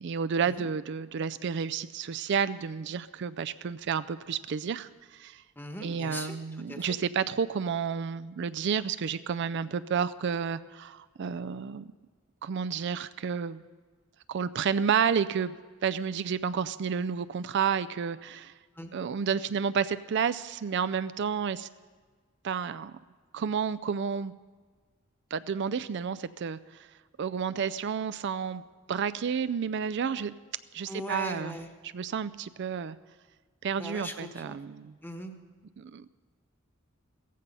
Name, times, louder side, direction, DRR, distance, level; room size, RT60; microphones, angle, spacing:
voice 1, 0.0-5.4 5.8-11.9 12.4-13.6 14.3-15.6 15.8-18.5 18.9-21.7 22.4-23.0 23.3-24.3 25.3-26.9 27.2-28.6 28.9-30.3 30.7-31.6 31.9-33.0 33.6-34.9 35.8-36.1, right 6 dB, 60° right, 13 dB, 0.4 m, -31 dB
voice 2, 5.6-6.3 6.7-7.0 18.7-18.9 30.9-31.7 33.8-34.6 35.0-35.3, left 1 dB, 10° left, 5 dB, 1.3 m, -40 dB
16.0 x 15.0 x 5.4 m, 1.5 s
head